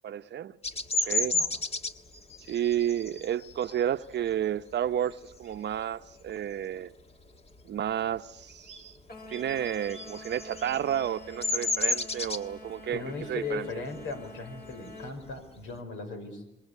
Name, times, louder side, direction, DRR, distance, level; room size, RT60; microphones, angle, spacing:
voice 1, 0.0-0.6 1.0-1.3 2.5-6.9 7.7-8.9 9.3-13.0 13.3-13.7, right 10 dB, 60° right, 0.8 m, -31 dB
Bird vocalization bird call bird song, 0.6-5.8 6.3-6.6 6.9-8.1 8.4-15.8, left 2 dB, 30° left, 1.6 m, -33 dB
sound 1, 9.1-15.2, left 2 dB, 50° left, 6.8 m, -47 dB
voice 2, 12.9-16.5, left 4 dB, 80° left, 5.3 m, -38 dB
27.0 x 21.5 x 8.3 m
cardioid pair, 90°, 20 cm